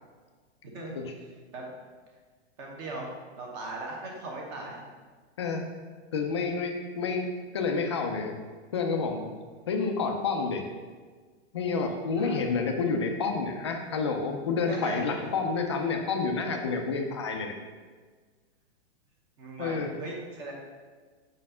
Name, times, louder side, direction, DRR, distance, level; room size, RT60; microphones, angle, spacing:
voice 1, 0.6-1.0 1.5-1.8 2.6-4.8 9.5-9.6 12.2-12.4 14.7-15.1 19.4-20.5, right 2 dB, 25° right, -1 dB, 1.0 m, -38 dB
voice 2, 6.1-7.3 7.5-8.3 8.7-9.3 9.7-10.6 11.5-17.5 19.6-19.9, left 4 dB, 25° left, 3 dB, 0.4 m, -29 dB
5.2 x 4.3 x 5.5 m, 1.5 s
supercardioid pair, 175°, 34 cm